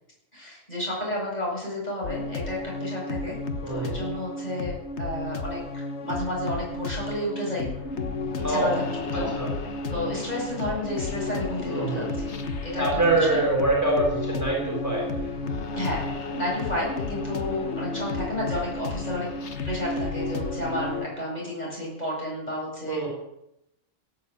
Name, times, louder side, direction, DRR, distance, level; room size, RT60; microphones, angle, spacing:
voice 1, 0.3-3.4 3.7-7.7 8.5-8.7 9.1-9.3 9.9-12.4 12.6-13.0 13.3-13.4 15.8-16.0 16.3-19.3 19.6-23.1, left 1 dB, 30° left, -4 dB, 8.0 m, -31 dB
sound 1, 2.0-21.1, left 3 dB, 60° left, 1.5 m, -32 dB
voice 2, 3.6-4.0 8.4-8.8 9.1-9.5 11.7-12.1 12.8-15.3 22.9-23.1, right 2 dB, 10° right, -2 dB, 4.1 m, -25 dB
17.5 x 8.6 x 8.7 m, 0.85 s
omnidirectional pair, 1.4 m